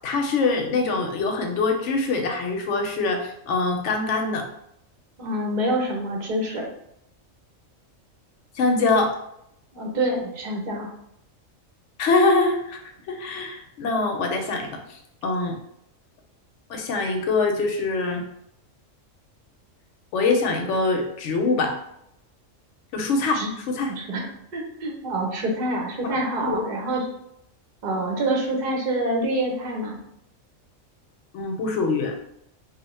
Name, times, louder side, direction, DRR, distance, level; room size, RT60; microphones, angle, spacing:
voice 1, 0.0-4.5 8.5-9.1 12.0-12.8 13.1-15.6 16.7-18.3 20.1-21.8 22.9-23.9 26.0-26.6 31.3-32.2, left 3 dB, 70° left, 3 dB, 0.9 m, -24 dB
voice 2, 5.2-6.6 9.7-10.9 23.3-23.5 23.9-24.3 24.5-27.0 27.8-30.0, right 1 dB, 45° right, -1 dB, 0.7 m, -26 dB
2.7 x 2.1 x 4.0 m, 0.77 s
omnidirectional pair, 1.4 m